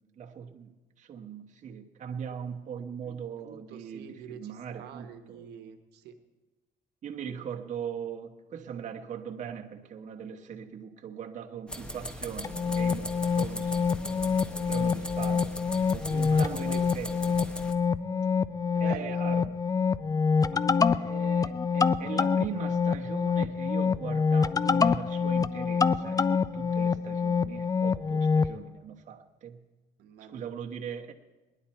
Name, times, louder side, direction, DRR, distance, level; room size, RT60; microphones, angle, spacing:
voice 1, 0.0-5.5 7.0-13.9 14.7-15.6 15.9-17.4 18.8-19.5 20.5-29.7 30.3-31.1, right 7 dB, 45° right, 2 dB, 1.1 m, -40 dB
voice 2, 3.4-6.2 16.0-17.0 18.7-19.3 30.0-30.5, right 7 dB, 75° right, 7 dB, 1.2 m, -46 dB
sound 1, 11.7-17.7, equal, 5° left, 1.0 m, -40 dB
sound 2, 12.4-28.5, left 5 dB, 20° left, 0.4 m, -26 dB
20.0 x 11.0 x 4.4 m, 1.1 s
cardioid pair, 110°, 17 cm